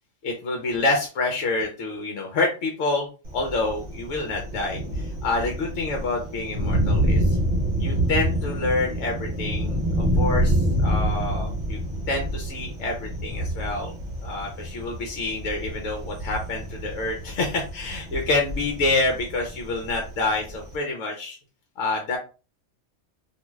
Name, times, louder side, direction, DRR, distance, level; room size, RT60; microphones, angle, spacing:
voice 1, 0.2-7.4 7.8-11.8 12.1-13.9 14.2-21.4 21.8-22.2, left 3 dB, 70° left, 2 dB, 1.0 m, -27 dB
Thunder, 3.2-20.8, equal, 45° right, 0.7 m, -27 dB
2.6 x 2.3 x 3.0 m, 0.33 s
omnidirectional pair, 1.4 m